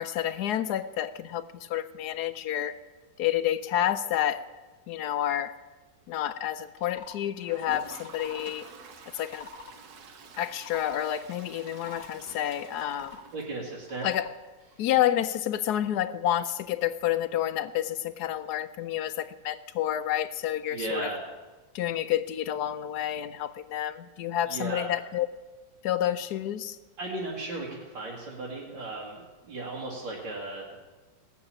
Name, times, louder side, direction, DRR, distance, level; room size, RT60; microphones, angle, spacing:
voice 1, 0.0-2.7 3.2-4.4 4.9-5.5 6.1-8.6 9.1-9.5 10.4-13.2 14.0-14.3 14.8-21.1 21.7-25.3 25.8-26.8, left 11 dB, 70° left, 13 dB, 1.1 m, -29 dB
sound 1, 6.7-7.2 7.8-8.5 9.1-9.8 10.4-11.1 11.7-12.1 12.7-13.3 13.8-14.3, left 5 dB, 20° left, 1.6 m, -45 dB
Toilet flush, 7.4-14.1 14.4-14.5 14.7-14.8 15.1-15.2 17.7-17.8 19.1-19.2, right 5 dB, 60° right, 1.5 m, -49 dB
voice 2, 13.3-14.1 14.7-14.8 20.7-21.2 24.5-24.9 27.0-30.7, right 2 dB, 80° right, -6 dB, 2.9 m, -36 dB
18.0 x 7.0 x 8.5 m, 1.2 s
omnidirectional pair, 2.0 m